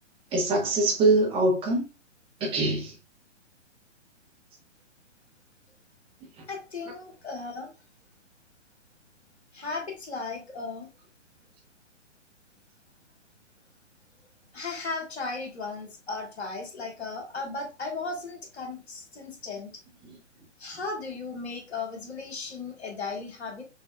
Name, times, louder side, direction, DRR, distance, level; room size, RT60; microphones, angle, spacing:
voice 1, 0.3-1.9 2.4-2.9 6.2-6.3 20.1-20.2, right 2 dB, 15° right, 1.2 m, -24 dB
voice 2, 6.5-7.7 9.5-10.9 14.5-19.8 20.6-23.6, left 3 dB, 60° left, 1.8 m, -36 dB
6.2 x 3.0 x 2.4 m
figure-of-eight pair, 125°, 36 cm